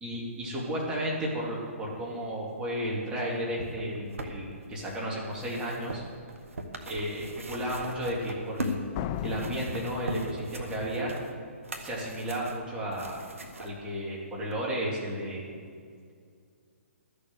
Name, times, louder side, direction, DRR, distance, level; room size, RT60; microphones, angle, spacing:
voice 1, 0.0-6.0 6.9-8.8 9.2-11.1 11.8-13.2 13.6-15.5, equal, 10° right, -5 dB, 2.8 m, -33 dB
sound 1, 3.7-8.9 9.2-13.7 14.5-14.6, right 1 dB, 70° right, 1.4 m, -40 dB
Slam, 8.9-10.9, left 11 dB, 30° left, 0.3 m, -36 dB
13.0 x 6.8 x 8.1 m, 2.2 s
figure-of-eight pair, 130°, 7 cm